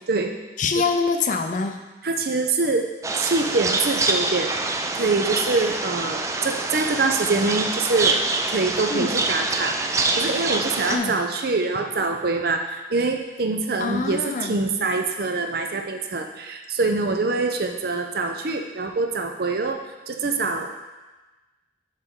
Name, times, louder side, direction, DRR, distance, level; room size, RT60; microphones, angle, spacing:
voice 1, 0.6-1.8 8.9-9.1 10.9-11.1 13.8-14.5, left 4 dB, 45° left, 6 dB, 0.5 m, -24 dB
voice 2, 2.0-4.5 4.9-8.2 8.5-20.8, right 3 dB, 60° right, 4 dB, 0.6 m, -25 dB
sound 1, 3.0-11.0, right 3 dB, 15° right, 0.3 m, -25 dB
6.4 x 5.4 x 3.7 m, 1.1 s
head